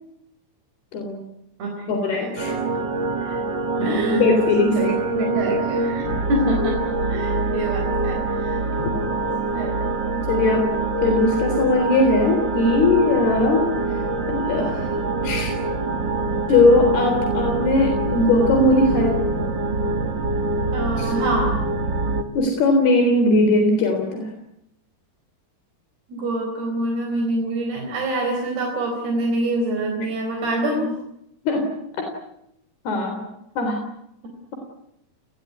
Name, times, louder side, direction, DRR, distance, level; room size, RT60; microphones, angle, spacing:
voice 1, 0.9-1.3 1.9-2.6 3.2-3.4 3.8-5.2 10.1-10.7 11.0-15.5 16.5-19.3 21.0-21.1 22.3-24.3 31.5-31.7 32.0-32.1 32.9-33.3 33.6-33.8, left 2 dB, 80° left, 4 dB, 5.7 m, -20 dB
voice 2, 1.6-2.5 3.8-4.2 4.7-8.6 9.5-9.7 20.7-21.6 26.1-30.9, right 1 dB, 80° right, 2 dB, 6.4 m, -26 dB
sound 1, 2.4-22.2, right 3 dB, 35° right, 2.2 m, -25 dB
30.0 x 20.5 x 9.7 m, 0.81 s
omnidirectional pair, 4.5 m